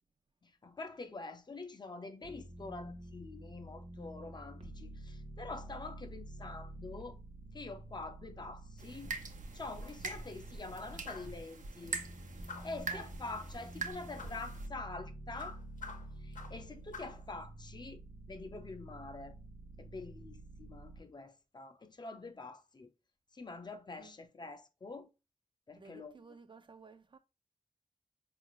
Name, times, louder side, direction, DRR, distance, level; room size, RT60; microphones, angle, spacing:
voice 1, 0.4-7.2 7.5-9.1 9.5-12.0 12.6-15.6 16.2-18.0 18.3-19.4 19.8-22.9 23.3-25.1 25.7-26.1, left 3 dB, 35° left, 0.5 m, -46 dB
sound 1, 2.2-11.4 11.8-21.0, right 1 dB, 55° right, 0.8 m, -49 dB
sound 2, 8.8-14.7, right 4 dB, 90° right, 0.6 m, -43 dB
sound 3, 11.1-11.4 12.5-12.9 14.2-14.4 15.4-16.6 16.9-17.2, left 5 dB, 85° left, 0.7 m, -48 dB
voice 2, 25.8-27.2, right 4 dB, 40° right, 0.3 m, -55 dB
4.6 x 2.4 x 2.9 m
wide cardioid pair, 125°, 13 cm